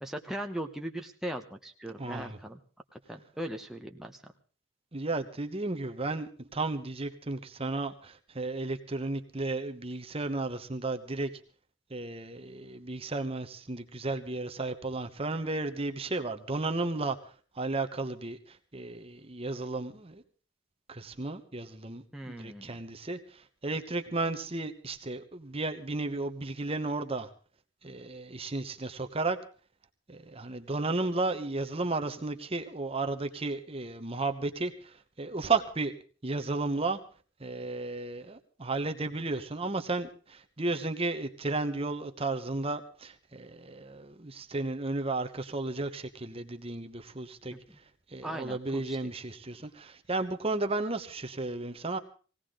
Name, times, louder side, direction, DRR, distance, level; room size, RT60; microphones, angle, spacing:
voice 1, 0.0-2.6 2.9-4.3 22.1-22.8 47.5-47.8 48.2-49.0, right 1 dB, ahead, 2 dB, 1.0 m, -39 dB
voice 2, 2.0-2.4 4.9-11.3 11.9-17.2 17.6-18.4 18.7-20.2 20.9-27.3 27.8-29.4 30.1-34.7 35.2-35.9 36.2-37.0 37.4-47.5 48.1-52.0, right 3 dB, 30° right, 7 dB, 1.0 m, -33 dB
20.0 x 17.5 x 3.8 m, 0.38 s
head